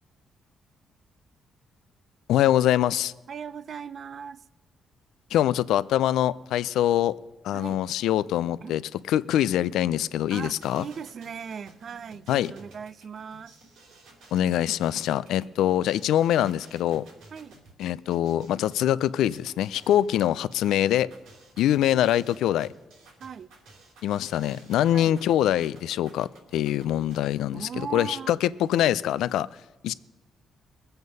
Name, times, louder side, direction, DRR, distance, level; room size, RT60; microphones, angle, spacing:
voice 1, 2.3-3.1 5.3-7.2 7.4-8.8 9.1-10.8 12.3-12.5 14.3-17.0 17.8-21.1 21.6-22.7 24.0-29.5 29.8-29.9, left 12 dB, 85° left, 0.4 m, -24 dB
voice 2, 3.3-4.4 7.5-7.8 8.6-8.8 10.3-13.5 17.3-17.6 21.9-22.0 23.2-23.5 24.9-25.2 27.5-28.3, right 6 dB, 50° right, 0.5 m, -38 dB
sound 1, 10.3-27.3, right 2 dB, 90° right, 3.0 m, -53 dB
20.5 x 7.9 x 5.4 m
cardioid pair, 90°, 0 cm